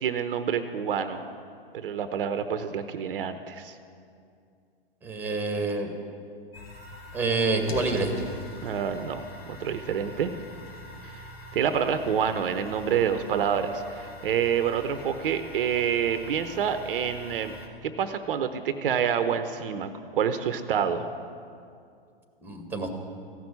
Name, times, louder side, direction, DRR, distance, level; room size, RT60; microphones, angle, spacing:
voice 1, 0.0-1.2 1.7-3.8 8.6-9.2 9.6-10.3 11.0-11.1 11.5-17.5 17.8-21.1, right 8 dB, 65° right, 10 dB, 0.8 m, -27 dB
voice 2, 5.0-5.9 7.1-8.1 22.4-22.9, right 3 dB, 5° right, 5 dB, 1.6 m, -27 dB
sound 1, 6.5-17.7, left 1 dB, 80° left, 1.9 m, -44 dB
15.5 x 6.1 x 9.7 m, 2.3 s
hypercardioid pair, 110°, 29 cm